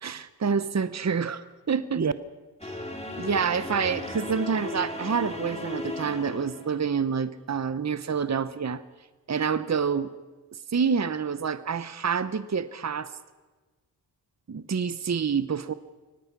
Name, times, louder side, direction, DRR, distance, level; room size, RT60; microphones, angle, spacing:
voice 1, 0.0-2.1 3.2-8.8 9.3-10.1 10.7-13.1 14.5-15.7, right 6 dB, 40° right, 14 dB, 1.0 m, -27 dB
sound 1, 2.6-7.0, left 1 dB, 15° left, 3.6 m, -36 dB
24.5 x 18.0 x 6.1 m, 1.3 s
wide cardioid pair, 70°, 41 cm